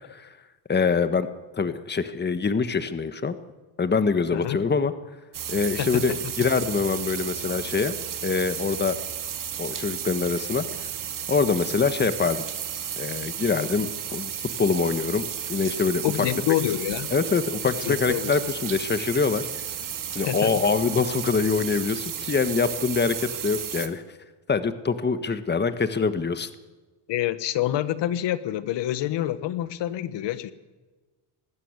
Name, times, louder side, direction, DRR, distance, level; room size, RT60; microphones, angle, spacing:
voice 1, 0.7-1.3 1.6-3.4 3.8-4.9 5.5-8.0 8.2-9.0 9.6-10.6 11.3-12.4 13.0-14.3 14.6-15.2 15.5-16.1 17.1-19.5 20.1-24.0 24.5-26.5, left 5 dB, 25° left, 10 dB, 1.5 m, -24 dB
sound 1, 5.3-23.9, right 9 dB, 45° right, 2.1 m, -33 dB
voice 2, 5.8-6.3 16.0-17.1 17.6-18.3 20.2-20.5 27.1-30.5, left 13 dB, 70° left, 14 dB, 1.4 m, -27 dB
20.0 x 16.0 x 9.8 m, 1.3 s
cardioid pair, 95°, 45 cm